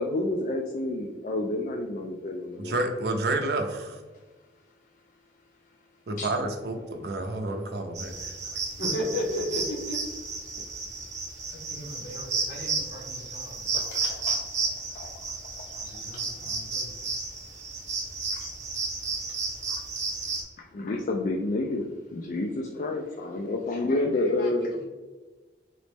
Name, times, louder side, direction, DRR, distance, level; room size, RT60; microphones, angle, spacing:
voice 1, 0.0-2.8 6.2-6.3 13.7-14.4 14.9-15.1 18.3-18.5 20.7-24.7, left 2 dB, 45° left, 1 dB, 0.3 m, -29 dB
voice 2, 2.6-4.0 6.1-8.3, right 2 dB, 60° right, 5 dB, 0.5 m, -30 dB
sound 1, 7.9-20.4, right 4 dB, 40° right, 0.9 m, -33 dB
voice 3, 8.8-10.0 11.5-13.7 15.7-16.9 23.9-24.8, left 1 dB, 75° left, -3 dB, 1.3 m, -35 dB
4.0 x 3.1 x 3.3 m, 1.3 s
head